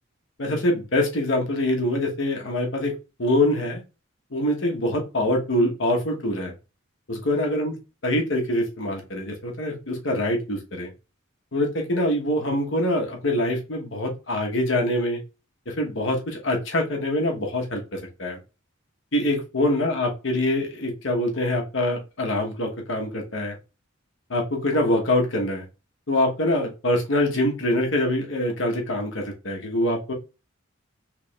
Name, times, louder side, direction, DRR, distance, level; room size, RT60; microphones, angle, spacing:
voice 1, 0.4-2.9 3.2-3.8 4.3-6.5 7.1-7.7 8.0-10.9 11.5-15.2 15.7-18.4 19.1-23.6 24.3-25.6 26.1-30.1, left 1 dB, 65° left, 1 dB, 1.0 m, -24 dB
4.7 x 3.0 x 2.3 m, 0.30 s
head